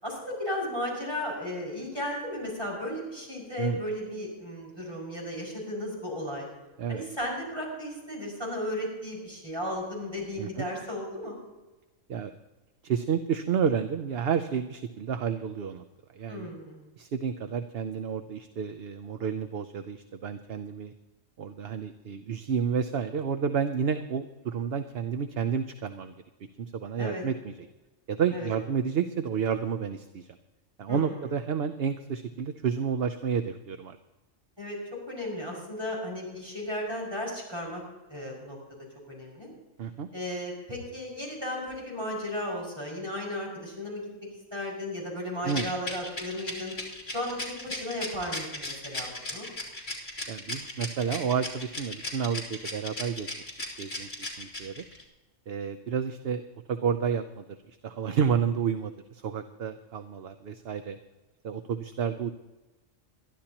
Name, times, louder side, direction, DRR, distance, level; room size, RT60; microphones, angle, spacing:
voice 1, 0.0-6.5 6.9-11.4 16.3-16.8 27.0-27.2 28.3-28.5 30.9-31.3 34.6-34.8 35.1-37.8 38.1-38.6 39.1-39.5 40.1-44.1 44.5-46.7 47.1-49.5, left 1 dB, 20° right, -3 dB, 5.9 m, -35 dB
voice 2, 12.8-15.8 16.1-16.5 17.0-20.9 21.4-26.1 26.6-27.5 28.1-30.3 30.8-34.0 39.8-40.1 45.4-45.7 50.3-53.3 53.8-54.8 55.5-61.0 61.4-62.3, right 7 dB, 55° right, 8 dB, 0.8 m, -30 dB
Rattle, 45.5-55.0, left 2 dB, 50° left, 3.3 m, -36 dB
22.0 x 13.0 x 2.9 m, 1.1 s
omnidirectional pair, 1.3 m